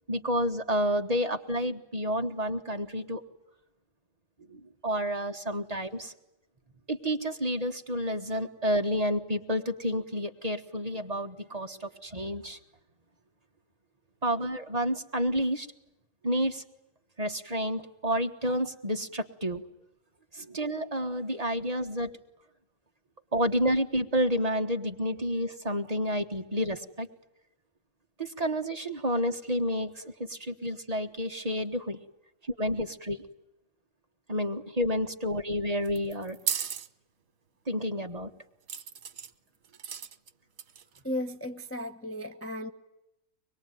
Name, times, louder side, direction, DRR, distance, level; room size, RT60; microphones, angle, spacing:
voice 1, 0.1-3.2 4.5-6.1 6.9-12.6 14.2-15.7 16.2-16.6 17.2-19.6 20.3-22.1 23.3-27.1 28.2-32.0 32.6-33.2 34.3-36.4 37.7-38.3, equal, 30° right, 1.5 m, -30 dB
sound 1, 35.9-36.9 38.7-39.3 39.7-40.3 40.6-41.0, right 8 dB, 90° right, 1.5 m, -34 dB
voice 2, 41.0-42.7, left 1 dB, 10° left, 0.8 m, -35 dB
24.5 x 21.5 x 9.3 m
omnidirectional pair, 1.4 m